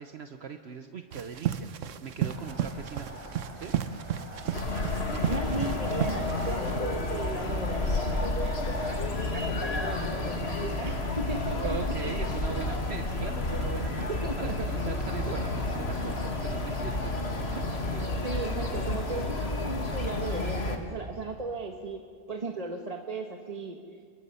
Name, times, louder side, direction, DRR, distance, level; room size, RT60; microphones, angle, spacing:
voice 1, 0.0-3.3 3.6-3.7 4.7-4.8 5.1-5.2 11.5-14.1 14.4-17.1 17.4-17.6 17.9-18.1, right 7 dB, 60° right, 7 dB, 1.1 m, -40 dB
sound 1, 1.1-6.8, right 10 dB, 85° right, 1.1 m, -33 dB
sound 2, 2.2-19.3, left 1 dB, 30° left, 7.5 m, -44 dB
sound 3, 4.5-20.8, left 2 dB, 60° left, 2.0 m, -31 dB
voice 2, 5.2-9.1 9.3-11.7 14.1-14.7 15.3-15.5 18.2-22.0 22.3-23.8, right 3 dB, 35° right, 3 dB, 1.2 m, -36 dB
28.5 x 23.0 x 5.6 m, 2.2 s
omnidirectional pair, 1.3 m